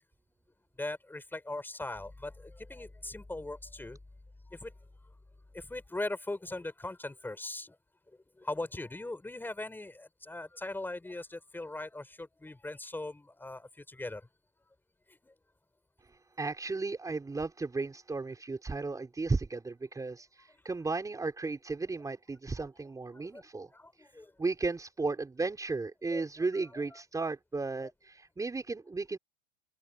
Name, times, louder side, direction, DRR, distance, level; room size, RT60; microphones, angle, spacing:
voice 1, 0.8-4.0 4.5-4.7 5.5-7.8 8.4-14.3 15.1-15.3 23.1-23.4 23.7-24.3 26.1-26.2 26.5-27.0, left 2 dB, 5° left, 5.3 m, -40 dB
voice 2, 16.4-23.7 24.4-29.2, right 3 dB, 10° right, 4.9 m, -34 dB
open air
supercardioid pair, 125°, 30 cm